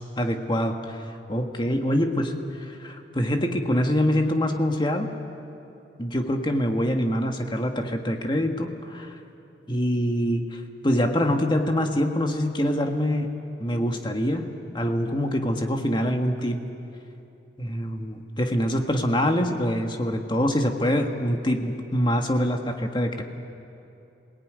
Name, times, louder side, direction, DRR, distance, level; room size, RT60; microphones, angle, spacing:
voice 1, 0.2-1.0 1.3-2.4 2.7-5.1 6.0-9.1 9.7-13.4 13.6-14.5 14.7-16.6 17.6-23.2, equal, 25° left, 4 dB, 1.7 m, -25 dB
27.0 x 18.5 x 9.4 m, 2.8 s
head